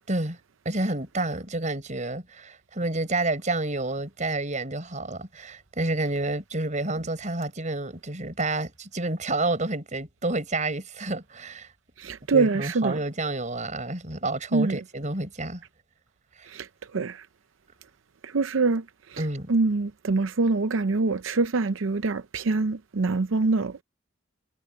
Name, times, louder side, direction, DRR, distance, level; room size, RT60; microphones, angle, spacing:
voice 1, 0.1-0.4 0.6-11.7 12.3-15.6 16.4-16.5 19.2-19.5, right 2 dB, 40° right, 4.9 m, -29 dB
voice 2, 12.0-13.0 14.5-14.7 16.5-16.6 16.9-17.2 18.3-18.8 19.5-23.8, right 3 dB, 80° right, 0.6 m, -24 dB
head